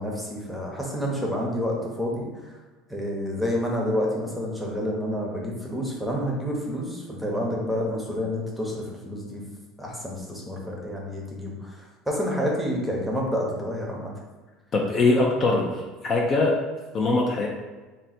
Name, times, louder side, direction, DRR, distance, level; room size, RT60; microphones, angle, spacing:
voice 1, 0.0-2.3 2.9-9.4 9.8-14.1, equal, ahead, -2 dB, 0.8 m, -29 dB
voice 2, 14.7-16.5 16.9-17.5, left 3 dB, 35° left, -1 dB, 0.5 m, -22 dB
3.8 x 2.2 x 4.2 m, 1.2 s
supercardioid pair, 125°, 0 cm